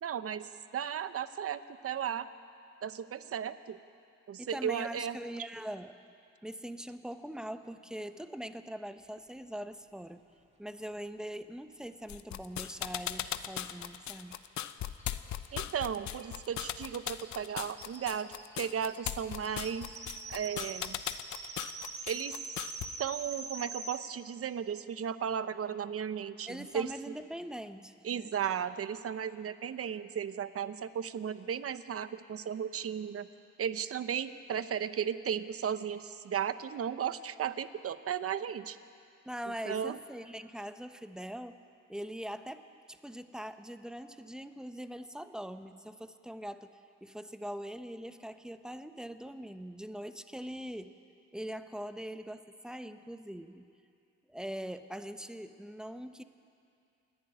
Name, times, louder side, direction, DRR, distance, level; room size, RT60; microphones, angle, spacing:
voice 1, 0.0-2.3 2.8-3.8 4.3-5.2 15.5-19.9 20.3-21.0 22.0-22.6 23.0-27.1 28.0-33.3 33.6-38.8 39.7-40.0, right 8 dB, 50° right, 13 dB, 0.9 m, -35 dB
voice 2, 4.4-6.0 6.4-10.3 10.6-14.4 26.5-28.3 39.2-41.6 41.9-50.9 51.3-53.7 54.3-56.2, equal, ahead, 9 dB, 0.9 m, -42 dB
sound 1, 12.1-22.9, left 11 dB, 70° left, 0.8 m, -38 dB
sound 2, 14.3-14.4 14.6-14.7 15.0-24.0, right 3 dB, 20° right, 2.2 m, -45 dB
28.5 x 11.0 x 8.9 m, 2.5 s
cardioid pair, 90°, 30 cm